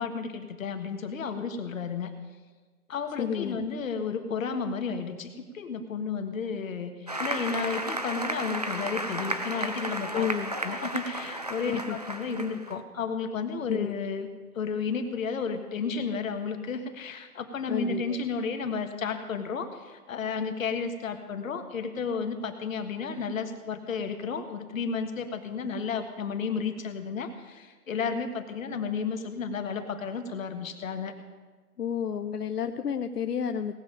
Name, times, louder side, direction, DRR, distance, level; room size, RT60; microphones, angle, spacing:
voice 1, 0.0-2.1 2.9-10.3 10.5-14.3 14.5-31.1, left 5 dB, 60° left, 6 dB, 1.6 m, -32 dB
voice 2, 3.2-3.6 10.1-10.6 11.7-12.0 13.7-13.9 17.7-18.2 31.8-33.7, left 8 dB, 90° left, 8 dB, 0.8 m, -31 dB
Applause, 7.1-12.7, right 1 dB, 30° right, 0.4 m, -33 dB
18.5 x 7.3 x 5.1 m, 1.3 s
hypercardioid pair, 145°, 46 cm